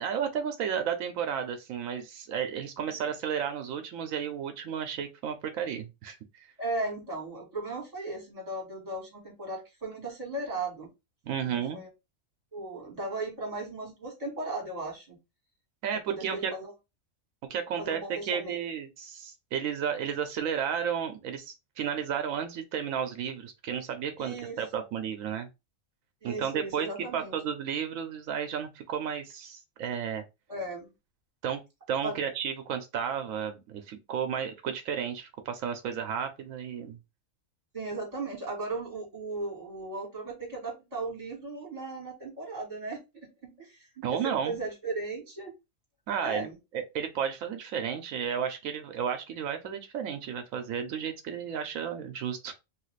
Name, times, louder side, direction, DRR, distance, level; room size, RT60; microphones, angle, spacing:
voice 1, 0.0-6.5 11.2-11.8 15.8-16.5 17.5-18.0 18.3-25.5 26.2-26.9 27.1-30.2 31.4-31.6 31.9-37.0 44.0-44.6 46.1-46.5 46.7-52.5, right 8 dB, 90° right, 1.0 m, -33 dB
voice 2, 6.6-10.9 11.4-11.9 12.5-15.2 16.1-16.7 17.8-18.6 24.2-24.6 26.2-27.4 30.5-30.9 32.0-32.2 37.7-45.5 46.2-46.6, right 2 dB, 30° right, 1.4 m, -36 dB
3.2 x 2.4 x 3.1 m
omnidirectional pair, 1.4 m